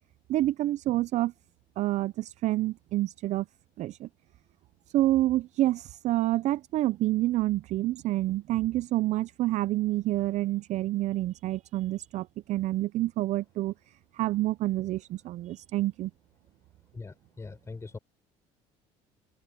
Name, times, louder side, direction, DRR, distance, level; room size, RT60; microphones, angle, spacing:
voice 1, 0.3-1.3 1.8-3.5 3.8-4.1 4.9-16.1, right 15 dB, 55° right, 0.5 m, -28 dB
voice 2, 16.9-18.0, left 3 dB, 20° left, 4.4 m, -42 dB
supercardioid pair, 95°, 14 cm